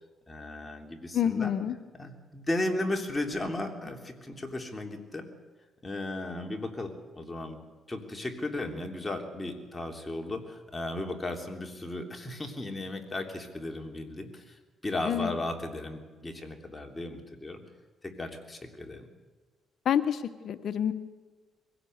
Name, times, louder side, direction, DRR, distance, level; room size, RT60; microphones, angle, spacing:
voice 1, 0.3-1.6 1.9-5.3 5.8-7.6 7.9-17.6 18.0-19.1, left 2 dB, 20° left, 3 dB, 3.2 m, -35 dB
voice 2, 1.1-1.7 15.0-15.3 19.8-20.9, left 9 dB, 60° left, 11 dB, 1.1 m, -28 dB
22.5 x 17.0 x 8.0 m, 1.4 s
cardioid pair, 90°, 0 cm